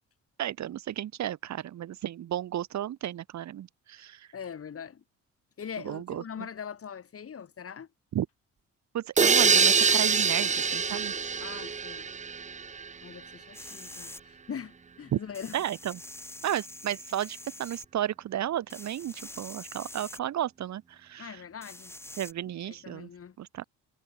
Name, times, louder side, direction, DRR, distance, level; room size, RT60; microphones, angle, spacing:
voice 1, 0.4-4.3 5.8-6.2 8.1-8.3 8.9-11.1 15.1-15.2 15.5-16.0 16.4-21.4 22.2-23.1 23.4-23.6, right 11 dB, 65° right, 1.5 m, -33 dB
voice 2, 4.3-5.0 5.6-7.9 11.4-12.1 13.0-15.6 21.2-21.9 22.7-23.4, left 7 dB, 50° left, 5.5 m, -42 dB
sound 1, 9.2-12.9, right 5 dB, 25° right, 0.7 m, -24 dB
sound 2, 13.5-14.2 15.3-17.9 18.7-20.2 21.6-22.3, left 1 dB, 10° left, 2.4 m, -45 dB
cardioid pair, 90°, 30 cm